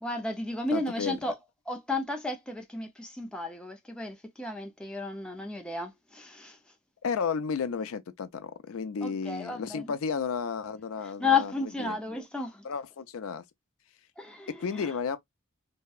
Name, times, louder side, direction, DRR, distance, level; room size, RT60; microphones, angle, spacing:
voice 1, 0.0-1.4 1.7-6.6 9.0-9.9 11.0-12.7 14.2-14.9, left 4 dB, 5° left, 0.4 m, -33 dB
voice 2, 0.7-1.2 7.0-11.5 11.8-12.0 12.6-13.4 14.5-15.2, left 5 dB, 75° left, 0.4 m, -32 dB
2.7 x 2.1 x 2.2 m
head